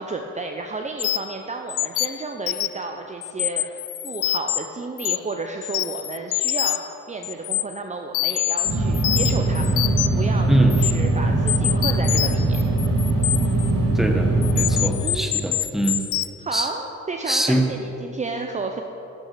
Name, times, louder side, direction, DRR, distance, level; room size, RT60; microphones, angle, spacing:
voice 1, 0.0-12.6 15.0-15.3 16.4-18.8, right 3 dB, 25° right, 3 dB, 0.7 m, -32 dB
sound 1, 1.0-1.3 1.7-2.8 3.2-4.6 5.0-5.3 5.6-6.9 7.2-7.6 8.1-10.2 10.7-10.9 11.5-13.7 14.4-16.3, left 15 dB, 85° left, 0.5 m, -25 dB
sound 2, 8.6-14.9, right 2 dB, 70° right, 2.7 m, -21 dB
voice 2, 13.9-16.0 16.5-16.7 17.2-17.7, right 1 dB, ahead, 3 dB, 1.1 m, -22 dB
12.0 x 5.9 x 6.6 m, 2.9 s
cardioid pair, 90°, 30 cm